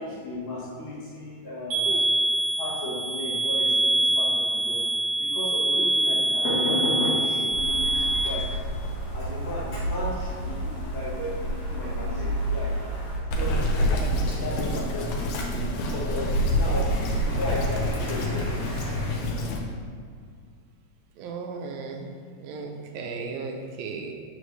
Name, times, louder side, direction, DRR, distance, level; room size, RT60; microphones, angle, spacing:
voice 1, 0.0-2.0 2.6-4.8 5.2-8.6 8.9-12.7 13.3-14.0 14.3-15.6 16.1-19.1, left 1 dB, 60° left, -6 dB, 2.2 m, -34 dB
sound 1, 1.7-8.3, right 2 dB, 55° right, 2.1 m, -24 dB
sound 2, 7.5-13.2, right 1 dB, 40° left, 2.2 m, -31 dB
Bird vocalization bird call bird song, 13.3-19.6, equal, 75° left, 1.8 m, -26 dB
voice 2, 21.2-24.1, right 4 dB, 85° right, 3 dB, 2.4 m, -35 dB
7.8 x 6.1 x 3.1 m, 2.2 s
omnidirectional pair, 4.0 m